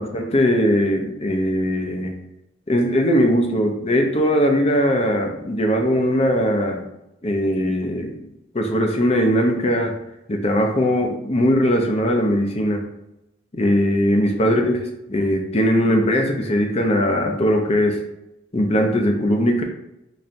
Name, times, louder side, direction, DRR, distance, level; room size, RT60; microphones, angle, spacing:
voice 1, 0.0-2.1 2.7-6.8 7.2-8.3 8.5-10.0 10.3-12.8 13.5-14.8 15.1-18.0 18.5-19.6, equal, 35° left, 3 dB, 0.6 m, -20 dB
4.1 x 3.3 x 2.5 m, 0.87 s
head